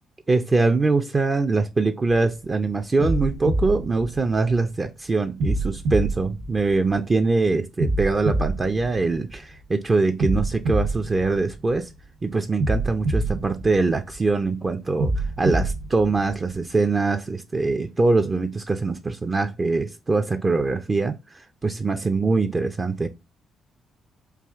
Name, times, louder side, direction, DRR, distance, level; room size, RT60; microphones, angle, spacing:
voice 1, 0.3-11.9 12.2-15.1 15.4-21.2 21.6-23.1, right 3 dB, 30° right, 0.5 m, -23 dB
sound 1, 2.1-2.4 3.0-4.8 5.4-7.2 7.8-9.6 10.2-12.0 12.6-14.4 15.0-16.8, right 2 dB, 65° right, 0.9 m, -26 dB
4.7 x 2.5 x 3.5 m
cardioid pair, 90°, 0 cm